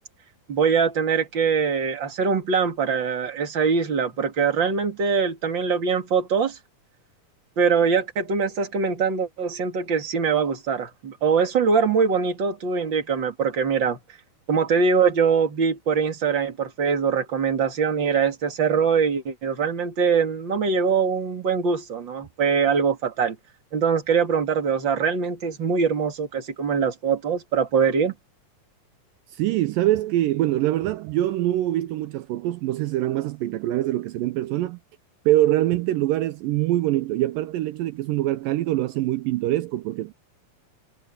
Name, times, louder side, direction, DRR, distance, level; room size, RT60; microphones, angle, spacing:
voice 1, 0.5-6.6 7.6-14.0 14.5-23.4 23.7-28.1, right 6 dB, 35° right, 2.8 m, -23 dB
voice 2, 29.3-34.8 35.3-40.1, right 14 dB, 80° right, 2.3 m, -24 dB
omnidirectional pair, 4.2 m